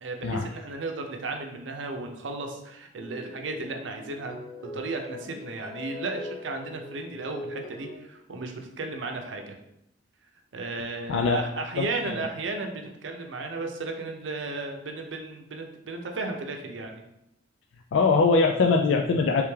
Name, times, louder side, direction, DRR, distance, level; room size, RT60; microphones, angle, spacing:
voice 1, 0.0-4.3 4.7-9.6 10.5-17.0, right 3 dB, 90° right, 4 dB, 0.6 m, -34 dB
sound 1, 3.0-8.0, left 1 dB, 30° left, 0.5 m, -41 dB
voice 2, 11.1-11.4 11.8-11.9 17.9-19.4, left 4 dB, 90° left, 3 dB, 0.3 m, -21 dB
3.3 x 3.2 x 3.2 m, 0.80 s
head